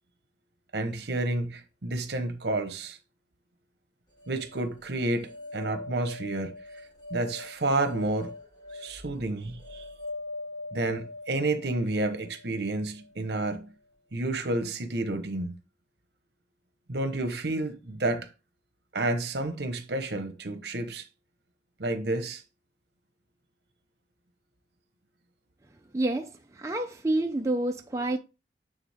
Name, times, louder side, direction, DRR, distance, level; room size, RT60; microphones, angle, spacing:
voice 1, 0.7-3.0 4.3-6.8 7.1-8.3 8.7-9.8 10.7-13.7 14.1-15.6 16.9-18.3 18.9-21.1 21.8-22.4, right 2 dB, 65° right, 1.0 m, -30 dB
sound 1, 4.2-13.4, left 2 dB, 20° left, 1.4 m, -42 dB
voice 2, 25.9-26.3 26.6-28.2, right 2 dB, 15° right, 0.4 m, -28 dB
9.1 x 3.7 x 3.5 m
head